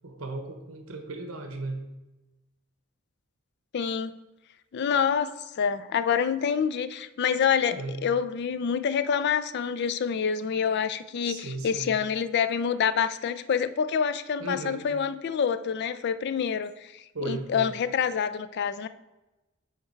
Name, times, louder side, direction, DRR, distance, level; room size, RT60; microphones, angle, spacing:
voice 1, 0.0-1.8 7.7-7.9 11.2-11.9 14.4-14.9 17.1-17.7, right 2 dB, 70° right, 4 dB, 0.9 m, -36 dB
voice 2, 3.7-4.1 4.7-18.9, left 7 dB, 50° left, 14 dB, 0.3 m, -27 dB
9.5 x 3.3 x 4.5 m, 1.0 s
head